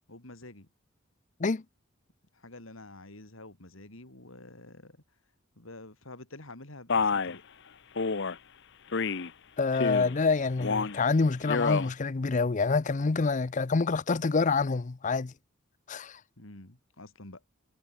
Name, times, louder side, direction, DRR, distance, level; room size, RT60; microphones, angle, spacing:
voice 1, 0.1-0.7 2.3-5.0 5.6-7.4 16.4-17.4, left 2 dB, 90° left, 3.8 m, -48 dB
Male speech man speaking, 6.9-7.4 8.0-8.4 8.9-9.3 9.7-10.2 10.6-11.0 11.4-11.9, left 4 dB, 60° left, 0.9 m, -29 dB
voice 2, 9.6-15.3 15.9-16.2, left 4 dB, 40° left, 0.5 m, -27 dB
head